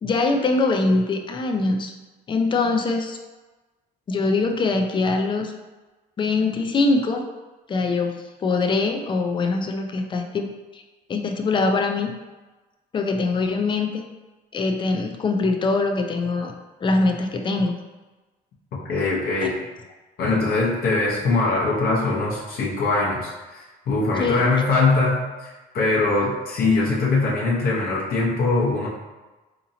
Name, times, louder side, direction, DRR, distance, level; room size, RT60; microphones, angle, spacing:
voice 1, 0.0-1.9 2.3-3.2 4.1-5.5 6.2-7.3 7.7-10.5 10.7-10.8 11.1-12.1 12.9-14.0 14.5-16.5 16.8-17.8 24.2-24.5, left 3 dB, 30° left, 4 dB, 0.4 m, -23 dB
voice 2, 18.9-19.5 20.2-28.9, left 3 dB, 65° left, -4 dB, 0.9 m, -22 dB
3.8 x 2.9 x 2.7 m, 1.2 s
cardioid pair, 110°, 17 cm